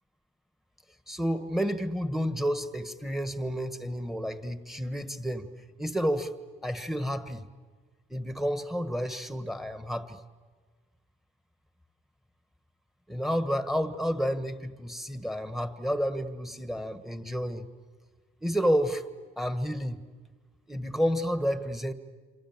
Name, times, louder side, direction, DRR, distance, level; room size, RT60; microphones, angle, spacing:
voice 1, 1.1-5.5 5.8-6.3 6.6-7.5 8.1-10.2 13.1-17.7 18.4-19.0 19.4-20.0 20.7-21.9, equal, ahead, 10 dB, 1.7 m, -30 dB
27.5 x 27.0 x 7.5 m, 1.5 s
cardioid pair, 90°, 20 cm